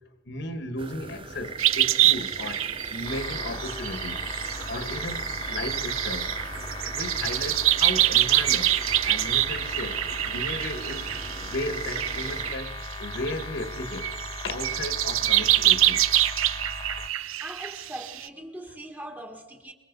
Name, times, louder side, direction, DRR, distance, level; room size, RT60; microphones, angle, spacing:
voice 1, 0.3-4.3 4.7-6.4 6.8-8.8 9.0-11.1 11.4-14.1 14.4-16.0, left 1 dB, 60° left, 1.8 m, -35 dB
sound 1, 0.8-12.6, right 4 dB, 25° right, 0.6 m, -36 dB
sound 2, 1.6-13.4 13.9-18.3, right 14 dB, 85° right, 0.6 m, -26 dB
sound 3, 3.0-17.1, left 3 dB, 25° left, 1.3 m, -38 dB
voice 2, 17.4-19.7, right 1 dB, 10° right, 1.6 m, -40 dB
25.0 x 22.5 x 5.5 m
head